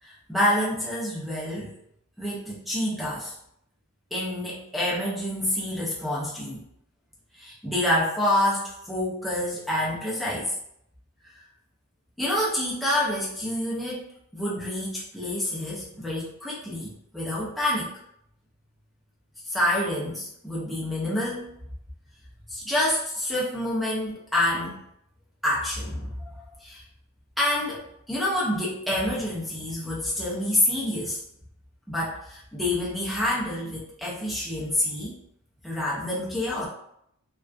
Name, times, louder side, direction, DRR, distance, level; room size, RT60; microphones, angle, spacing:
voice 1, 0.0-1.7 2.2-3.3 4.1-6.6 7.3-10.5 12.2-14.1 14.3-17.9 19.4-21.5 22.5-24.8 25.4-26.8 27.4-31.2 31.9-35.2 35.6-36.7, left 1 dB, ahead, -6 dB, 0.4 m, -27 dB
2.4 x 2.3 x 2.3 m, 0.74 s
head